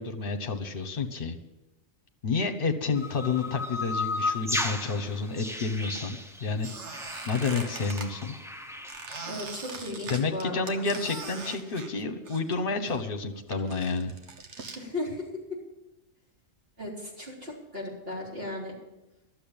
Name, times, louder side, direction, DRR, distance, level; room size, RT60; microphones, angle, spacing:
voice 1, 0.0-1.4 2.2-6.7 7.3-8.3 10.1-14.1, left 4 dB, 45° left, 8 dB, 1.3 m, -30 dB
sound 1, 2.9-9.3, left 2 dB, 5° right, 0.4 m, -35 dB
Squeak, 6.6-8.1 8.9-12.6 12.8-14.8, right 4 dB, 60° right, 1.5 m, -41 dB
voice 2, 9.2-10.8 14.8-15.3 16.8-18.7, left 1 dB, 45° right, -4 dB, 4.1 m, -36 dB
12.5 x 7.7 x 8.8 m, 1.0 s
omnidirectional pair, 1.4 m